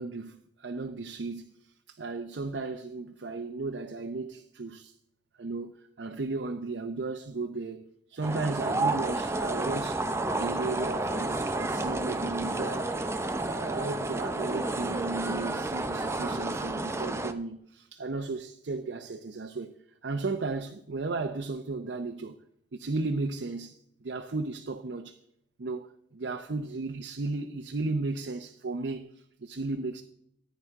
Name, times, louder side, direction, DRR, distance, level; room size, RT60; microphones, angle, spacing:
voice 1, 0.0-1.5 1.9-4.9 5.4-5.7 6.0-10.0 10.3-13.0 13.4-19.7 20.0-22.4 22.7-23.8 24.0-25.2 25.6-25.9 26.1-30.0, right 3 dB, 80° right, 0.7 m, -35 dB
sound 1, 8.2-17.3, right 2 dB, 15° right, 0.6 m, -31 dB
14.5 x 9.3 x 3.6 m
head